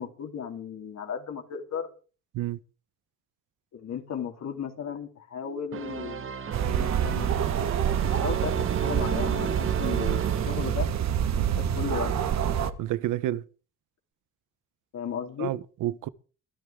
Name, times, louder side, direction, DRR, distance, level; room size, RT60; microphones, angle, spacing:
voice 1, 0.0-1.9 3.7-6.3 6.6-10.9 11.3-12.1 14.9-15.5, left 7 dB, 60° left, 3.6 m, -36 dB
sound 1, 5.7-11.4, right 7 dB, 45° right, 1.1 m, -33 dB
sound 2, 6.5-12.7, right 9 dB, 65° right, 1.6 m, -27 dB
voice 2, 12.8-13.4 15.4-16.1, right 14 dB, 85° right, 1.0 m, -29 dB
23.0 x 13.5 x 3.7 m
cardioid pair, 90°, 30 cm